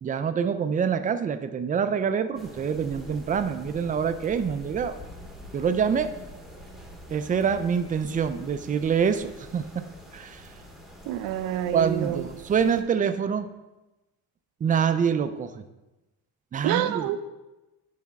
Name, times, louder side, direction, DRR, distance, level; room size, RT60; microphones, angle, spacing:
voice 1, 0.0-4.9 5.5-6.1 7.1-9.8 10.1-10.5 11.7-13.5 14.6-15.6 16.5-17.0, right 7 dB, 25° right, 10 dB, 0.4 m, -26 dB
sound 1, 2.3-12.8, equal, ahead, 0.9 m, -45 dB
voice 2, 11.0-12.3 16.6-17.2, right 11 dB, 90° right, 11 dB, 0.6 m, -27 dB
9.4 x 4.2 x 3.5 m, 1.0 s
cardioid pair, 120°, 35 cm